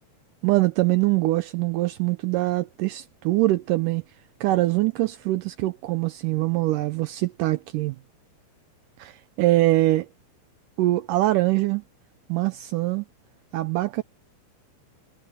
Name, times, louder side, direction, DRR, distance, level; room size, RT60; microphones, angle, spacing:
voice 1, 0.4-4.0 4.4-8.0 9.0-10.1 10.8-11.8 12.3-13.1 13.5-14.0, right 18 dB, 80° right, 2.1 m, -23 dB
omnidirectional pair, 4.0 m